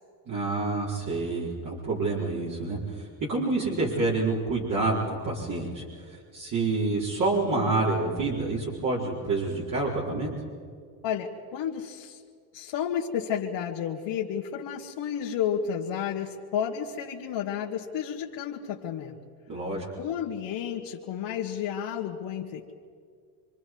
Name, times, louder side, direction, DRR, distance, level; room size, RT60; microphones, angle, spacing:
voice 1, 0.3-10.3 19.5-19.8, right 3 dB, 40° right, -6 dB, 4.7 m, -28 dB
voice 2, 11.0-12.2 12.5-19.2 20.0-22.7, left 8 dB, 55° left, -2 dB, 2.1 m, -31 dB
27.5 x 25.0 x 4.8 m, 2.1 s
supercardioid pair, 110°, 48 cm